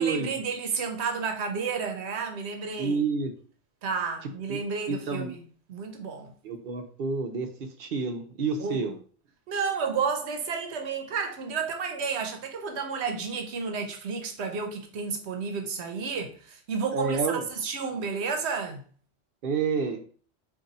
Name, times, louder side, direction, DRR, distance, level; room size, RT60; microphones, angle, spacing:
voice 1, 0.0-3.0 3.8-5.4 5.7-6.3 8.6-8.9 9.5-18.8, right 5 dB, 85° right, 1.0 m, -31 dB
voice 2, 2.8-3.3 4.5-4.6 4.9-5.3 6.4-9.0 16.9-17.5 19.4-20.0, right 4 dB, 60° right, 0.8 m, -29 dB
3.8 x 2.7 x 4.0 m
omnidirectional pair, 1.1 m